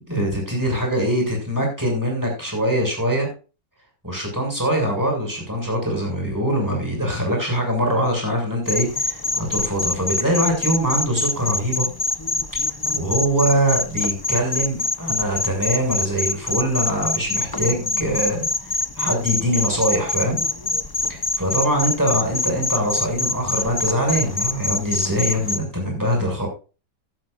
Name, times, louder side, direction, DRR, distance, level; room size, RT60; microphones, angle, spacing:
voice 1, 0.1-3.3 4.0-11.9 12.6-20.4 21.4-26.5, equal, 10° right, 1 dB, 7.0 m, -23 dB
sound 1, 8.7-25.6, left 2 dB, 30° left, 0.4 m, -25 dB
15.5 x 12.0 x 2.6 m, 0.33 s
omnidirectional pair, 1.9 m